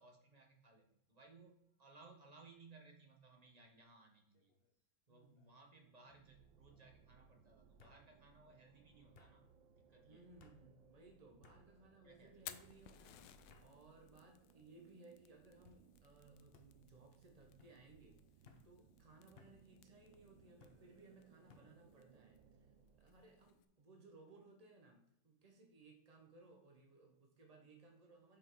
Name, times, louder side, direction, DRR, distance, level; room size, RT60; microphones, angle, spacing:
voice 1, 0.0-4.5 5.1-9.5 9.9-10.3 12.0-12.5, right 3 dB, 30° right, 2 dB, 0.8 m, -63 dB
sound 1, 4.3-4.7 5.1-5.7 6.7-6.8 7.8-8.0 9.1-9.3 10.4-10.6 11.4-11.6 12.5-12.7 13.5-13.7 14.4-14.9 15.6-15.8 16.5-16.7 17.6-17.8 18.4-18.7 19.4-19.6 20.6-20.8 21.5-21.7, left 4 dB, 60° left, 0.6 m, -65 dB
voice 2, 5.1-5.5 10.1-28.4, right 3 dB, 50° right, 2 dB, 0.4 m, -63 dB
sound 2, 6.1-23.5, right 6 dB, 75° right, 1.3 m, -68 dB
Fire, 12.2-23.6, left 12 dB, 75° left, 1.1 m, -61 dB
6.7 x 5.6 x 4.6 m, 0.78 s
omnidirectional pair, 2.2 m